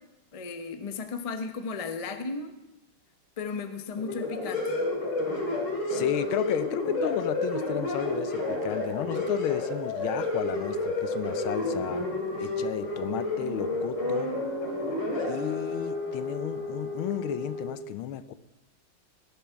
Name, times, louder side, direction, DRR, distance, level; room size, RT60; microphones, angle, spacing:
voice 1, 0.3-2.5 3.4-4.8, left 4 dB, 40° left, 8 dB, 0.4 m, -35 dB
sound 1, 4.0-17.7, left 2 dB, 60° left, 3.3 m, -31 dB
voice 2, 5.9-12.1 12.4-14.4 15.3-18.3, left 11 dB, 85° left, 14 dB, 1.5 m, -33 dB
17.5 x 11.0 x 4.6 m, 0.94 s
omnidirectional pair, 2.2 m